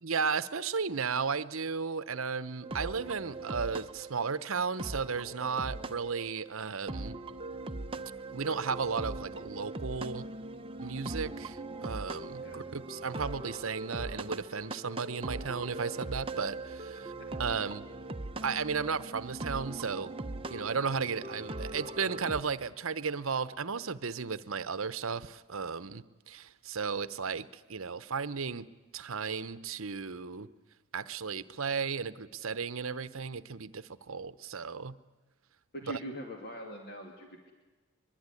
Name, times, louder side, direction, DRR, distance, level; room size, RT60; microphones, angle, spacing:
voice 1, 0.0-7.1 8.3-10.2 10.8-17.1 17.4-17.8 18.4-20.1 20.5-28.7 28.9-30.5 30.9-35.0 35.9-36.0, right 5 dB, 70° right, 15 dB, 0.9 m, -34 dB
sound 1, 2.6-22.4, right 2 dB, 25° right, 0.9 m, -40 dB
voice 2, 35.7-37.5, equal, 45° left, 2 dB, 2.6 m, -42 dB
22.5 x 22.5 x 9.8 m, 1.2 s
head